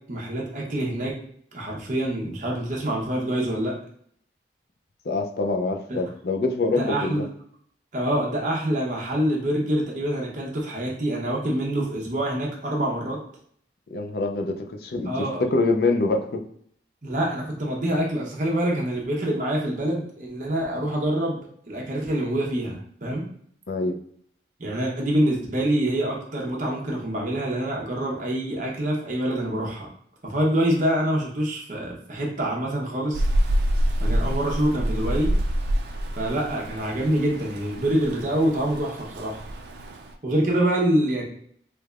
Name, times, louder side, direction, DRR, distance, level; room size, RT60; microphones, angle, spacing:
voice 1, 0.1-1.1 1.5-3.7 5.9-6.0 6.7-7.3 7.9-13.2 15.1-15.4 17.0-21.4 21.7-23.3 24.6-29.9 30.2-33.2 34.0-35.3 36.1-39.4 40.2-41.2, right 1 dB, 45° right, -2 dB, 0.8 m, -26 dB
voice 2, 5.1-7.2 13.9-15.1 15.4-16.4 23.7-24.0, left 3 dB, 60° left, 4 dB, 0.4 m, -25 dB
Rain, 33.1-40.1, equal, 65° right, 0.4 m, -27 dB
3.3 x 3.2 x 2.4 m, 0.62 s
head